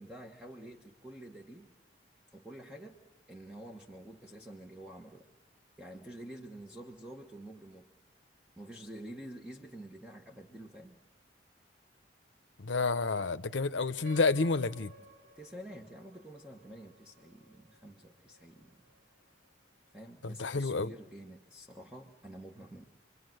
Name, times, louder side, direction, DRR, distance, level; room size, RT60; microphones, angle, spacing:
voice 1, 0.0-1.7 2.3-3.0 3.3-5.3 5.8-7.9 8.6-11.0 15.3-18.8 19.9-22.8, right 1 dB, 5° right, 1.4 m, -48 dB
voice 2, 12.6-14.9 20.2-20.9, left 3 dB, 85° left, 0.8 m, -30 dB
sound 1, 14.0-19.0, left 2 dB, 85° right, 3.2 m, -55 dB
27.5 x 22.5 x 7.9 m
head